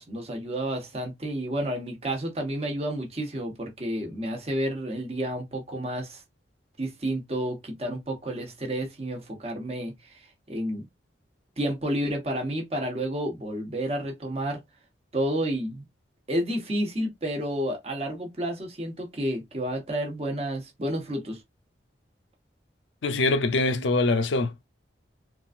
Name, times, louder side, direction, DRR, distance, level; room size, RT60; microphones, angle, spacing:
voice 1, 0.0-6.2 6.8-9.9 10.5-10.8 11.6-14.6 15.1-15.8 16.3-21.4, right 1 dB, 35° right, 1.0 m, -30 dB
voice 2, 23.0-24.7, left 3 dB, 80° left, 0.6 m, -24 dB
3.8 x 2.5 x 2.4 m
head